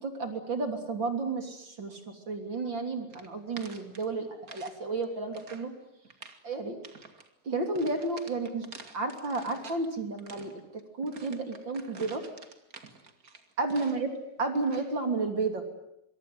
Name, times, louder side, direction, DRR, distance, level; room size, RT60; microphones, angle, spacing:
voice 1, 0.0-2.0 2.3-5.7 6.4-6.8 7.4-8.6 8.9-10.5 11.0-12.2 13.6-14.1 14.4-15.6, right 3 dB, 30° right, 5 dB, 2.9 m, -32 dB
sound 1, 3.1-4.8 5.0-5.7 6.0-6.4 6.8-7.3 7.7-9.9 10.2-14.2 14.5-15.0, right 4 dB, 65° right, 0.8 m, -49 dB
26.0 x 23.0 x 9.6 m, 0.81 s
omnidirectional pair, 5.3 m